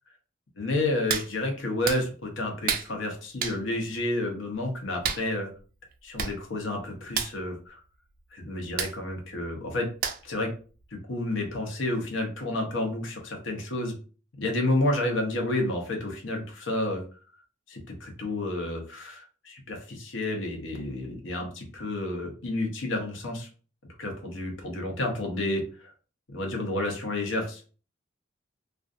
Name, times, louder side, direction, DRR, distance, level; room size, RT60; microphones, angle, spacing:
voice 1, 0.6-5.5 6.0-7.8 8.3-9.9 10.2-10.5 10.9-13.9 14.4-17.0 17.7-23.5 24.0-25.9 26.3-27.7, left 1 dB, 85° left, 2 dB, 0.8 m, -30 dB
Hands, 1.1-1.3 1.8-2.0 2.7-2.9 3.4-3.6 5.0-5.2 5.9-6.0 6.2-6.4 6.6-6.8 7.1-7.3 8.8-8.9 10.0-10.4 10.8-10.9, right 7 dB, 50° right, 0.3 m, -29 dB
2.5 x 2.3 x 2.5 m, 0.38 s
head